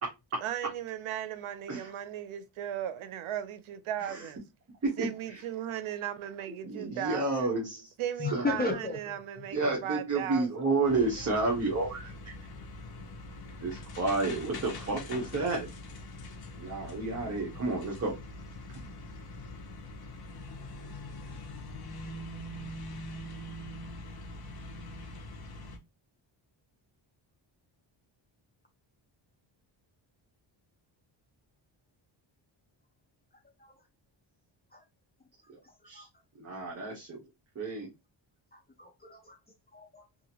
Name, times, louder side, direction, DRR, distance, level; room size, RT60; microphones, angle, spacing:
voice 1, 0.4-4.4 5.0-7.5 8.0-10.7, right 11 dB, 85° right, 0.6 m, -37 dB
voice 2, 6.7-7.9 8.3-8.7 9.5-12.1 13.6-15.7 16.6-18.1 35.9-36.1 36.4-37.2 37.6-37.9, right 3 dB, 30° right, 0.8 m, -30 dB
voice 3, 8.2-9.1 9.7-9.8 33.6-33.7 34.7-34.8 35.9-36.1 36.6-36.7 38.5-39.4 39.7-40.0, left 3 dB, 20° left, 0.5 m, -35 dB
sound 1, 10.8-25.8, left 1 dB, 50° left, 0.7 m, -43 dB
2.8 x 2.5 x 2.7 m
wide cardioid pair, 140°, 48 cm